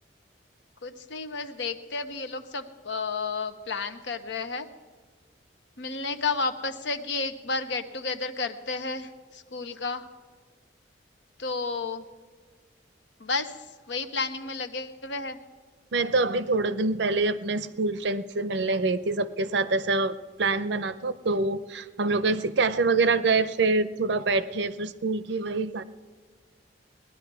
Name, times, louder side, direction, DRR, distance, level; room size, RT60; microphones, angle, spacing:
voice 1, 0.8-4.7 5.8-10.1 11.4-12.0 13.2-13.5 13.9-15.4, left 4 dB, 75° left, 9 dB, 0.9 m, -32 dB
voice 2, 15.9-25.8, right 3 dB, 70° right, 14 dB, 0.6 m, -25 dB
18.5 x 11.0 x 4.7 m, 1.5 s
head